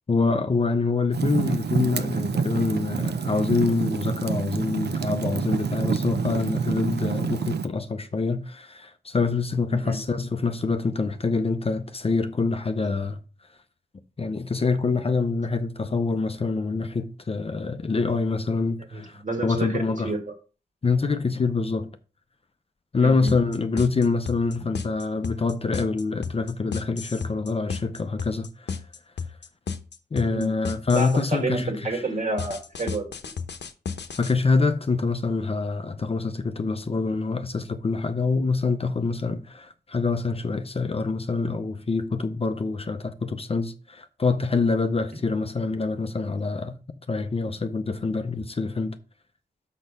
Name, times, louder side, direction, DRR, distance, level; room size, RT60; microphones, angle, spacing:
voice 1, 0.1-13.2 14.2-20.1 20.8-21.9 22.9-28.8 30.1-32.0 34.2-46.8 47.1-49.0, left 4 dB, 35° left, 0.6 m, -25 dB
Fire, 1.1-7.7, right 6 dB, 75° right, 0.6 m, -27 dB
voice 2, 18.9-20.3 23.0-23.3 30.3-30.5 30.9-33.1, right 2 dB, 45° right, 1.9 m, -29 dB
sound 1, 23.3-31.3 32.4-34.3, left 5 dB, 80° left, 0.9 m, -33 dB
6.3 x 5.8 x 5.3 m
wide cardioid pair, 145°, 18 cm